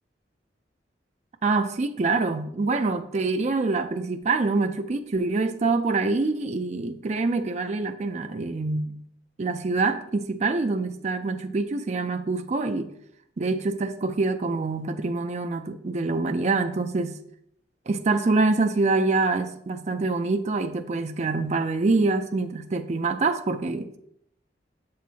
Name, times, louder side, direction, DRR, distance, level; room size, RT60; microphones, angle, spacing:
voice 1, 1.4-9.0 9.4-12.9 13.4-17.2 17.9-23.9, right 3 dB, 40° right, 0.4 m, -25 dB
7.7 x 7.1 x 2.8 m
head